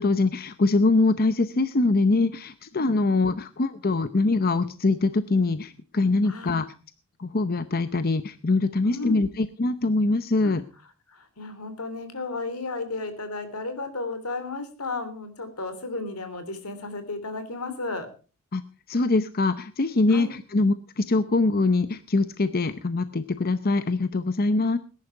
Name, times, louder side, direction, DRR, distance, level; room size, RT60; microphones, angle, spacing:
voice 1, 0.0-6.7 7.2-10.6 18.5-24.8, left 3 dB, 45° left, 12 dB, 0.7 m, -23 dB
voice 2, 6.2-6.6 8.8-9.2 10.4-10.5 11.1-18.1 20.1-20.3, left 3 dB, 90° left, 10 dB, 3.2 m, -33 dB
19.5 x 10.5 x 4.6 m, 0.37 s
head